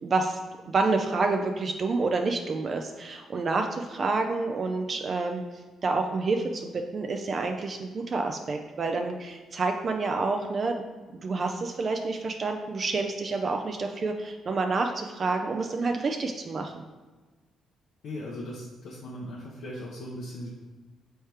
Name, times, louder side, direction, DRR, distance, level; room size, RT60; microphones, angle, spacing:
voice 1, 0.0-0.4 0.7-5.4 5.8-10.9 11.1-16.7, right 3 dB, 45° right, 4 dB, 0.3 m, -28 dB
voice 2, 18.0-20.5, left 1 dB, 75° left, -4 dB, 0.6 m, -38 dB
4.4 x 3.2 x 3.2 m, 1.3 s
cardioid pair, 90°, 0 cm